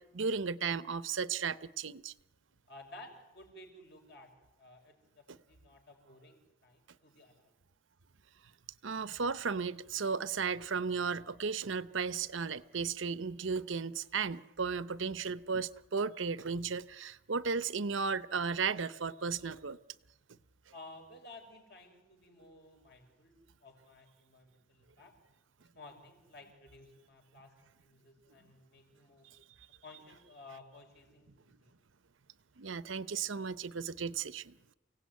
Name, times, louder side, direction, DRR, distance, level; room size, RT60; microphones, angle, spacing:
voice 1, 0.0-2.1 5.3-5.4 8.8-19.8 32.6-34.6, right 5 dB, 75° right, 0.8 m, -35 dB
voice 2, 2.7-4.3 4.6-7.5 20.7-23.3 23.6-25.1 25.6-29.3 29.8-31.7, left 2 dB, 55° left, 5.4 m, -55 dB
28.5 x 17.0 x 9.4 m
head